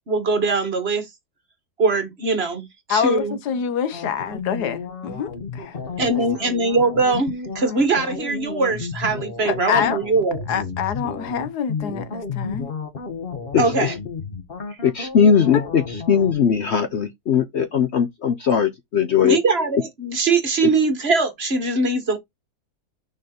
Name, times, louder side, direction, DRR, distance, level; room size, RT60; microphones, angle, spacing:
voice 1, 0.1-1.1 1.8-3.4 6.0-10.5 13.6-13.9 19.2-22.2, right 3 dB, 40° right, 1.5 m, -21 dB
voice 2, 2.9-5.8 6.0-6.2 9.4-10.0 10.5-12.7 15.5-15.6, left 8 dB, 90° left, 1.5 m, -26 dB
sound 1, 3.9-16.3, left 4 dB, 40° left, 1.3 m, -32 dB
voice 3, 13.5-13.9 14.8-19.4, left 7 dB, 55° left, 0.8 m, -19 dB
6.4 x 3.9 x 4.3 m
omnidirectional pair, 1.7 m